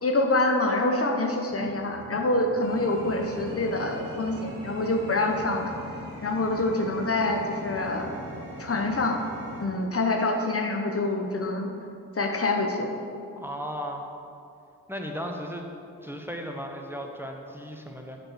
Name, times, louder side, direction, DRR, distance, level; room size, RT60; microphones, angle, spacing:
voice 1, 0.0-5.7 6.2-8.1 8.6-9.2 9.6-11.7 12.1-12.9, left 2 dB, 40° left, 3 dB, 0.8 m, -26 dB
sound 1, 1.5-9.7, right 1 dB, 70° right, 1.4 m, -42 dB
voice 2, 13.3-14.0 14.9-15.7 16.0-18.2, equal, 5° right, 2 dB, 0.9 m, -35 dB
6.3 x 4.3 x 6.2 m, 2.6 s
supercardioid pair, 40°, 36 cm